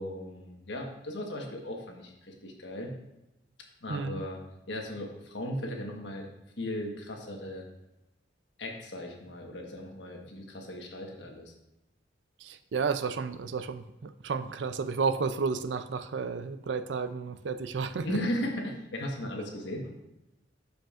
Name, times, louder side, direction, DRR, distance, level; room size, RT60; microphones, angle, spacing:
voice 1, 0.0-2.9 3.8-4.4 4.7-6.3 6.6-7.6 8.6-11.5 18.0-19.9, left 1 dB, 80° left, 1 dB, 1.3 m, -37 dB
voice 2, 3.9-4.2 12.4-18.2, right 5 dB, 80° right, 11 dB, 0.4 m, -32 dB
12.5 x 5.1 x 2.5 m, 0.93 s
head